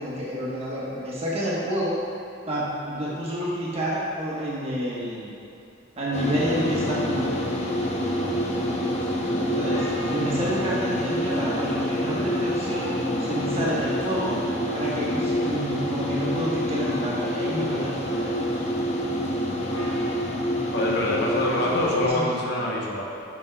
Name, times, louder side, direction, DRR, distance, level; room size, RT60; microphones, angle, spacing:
voice 1, 0.0-2.0 2.5-5.3 6.0-7.3 9.5-14.4 14.7-18.3 22.0-22.3 22.6-22.7, equal, 30° right, -7 dB, 1.2 m, -29 dB
sound 1, 6.1-22.1, equal, 35° left, 0.6 m, -27 dB
sound 2, 6.5-20.2, left 1 dB, 80° left, 1.3 m, -46 dB
voice 2, 20.7-23.0, left 1 dB, 60° left, -3 dB, 0.9 m, -25 dB
7.1 x 6.1 x 2.3 m, 2.7 s
head